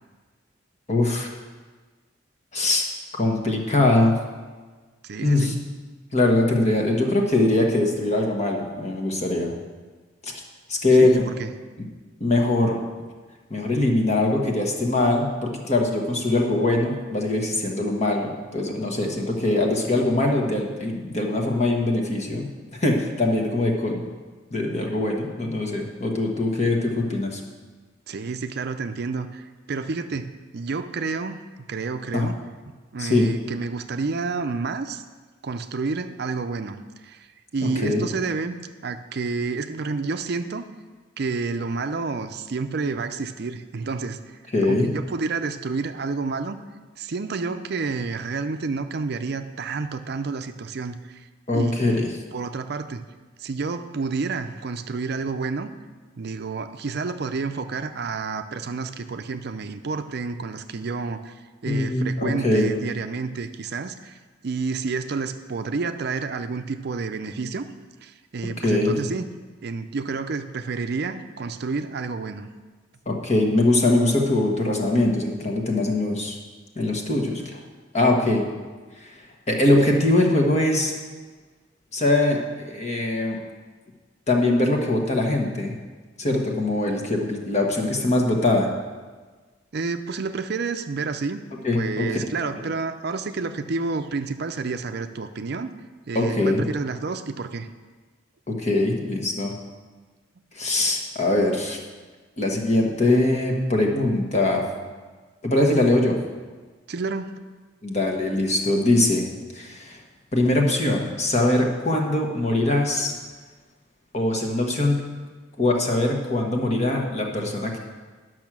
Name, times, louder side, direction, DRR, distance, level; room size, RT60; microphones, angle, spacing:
voice 1, 0.9-1.3 2.5-2.8 3.1-4.2 5.2-5.5 6.1-9.5 10.2-10.3 10.7-11.2 12.2-12.8 13.5-24.0 24.5-27.4 32.1-32.3 33.0-33.3 37.8-38.1 44.5-44.9 51.5-52.1 61.7-62.7 68.6-69.0 73.1-76.4 76.7-77.6 77.9-78.4 79.0-80.9 81.9-83.4 84.3-85.7 86.2-88.7 91.6-92.1 96.1-96.6 98.5-99.5 100.5-101.8 102.4-104.6 105.4-106.2 107.8-109.3 109.5-110.0 110.3-113.1 114.1-115.0 115.6-117.8, left 2 dB, 35° left, 1 dB, 1.3 m, -22 dB
voice 2, 5.0-5.6 11.0-11.5 28.1-32.4 32.7-35.0 35.4-37.3 37.5-38.5 38.8-40.7 41.2-46.6 47.0-51.3 51.5-52.0 52.3-53.0 53.4-55.7 56.2-64.2 64.4-67.7 68.0-69.2 69.6-72.5 89.7-91.4 91.7-95.7 96.1-97.7 106.9-107.3, right 4 dB, 55° right, 9 dB, 0.5 m, -29 dB
10.5 x 6.2 x 6.1 m, 1.4 s
head